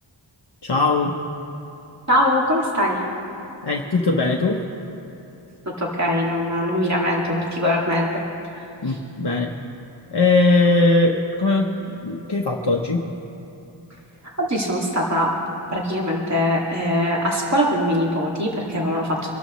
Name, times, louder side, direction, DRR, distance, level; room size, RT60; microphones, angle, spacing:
voice 1, 0.6-1.2 3.6-4.6 8.8-9.5 10.1-13.0, left 3 dB, 55° left, 0 dB, 1.0 m, -20 dB
voice 2, 2.1-3.0 5.8-8.1 14.4-15.3 15.7-19.2, equal, 35° right, -3 dB, 2.2 m, -22 dB
25.0 x 12.5 x 3.1 m, 2.9 s
wide cardioid pair, 45°, 48 cm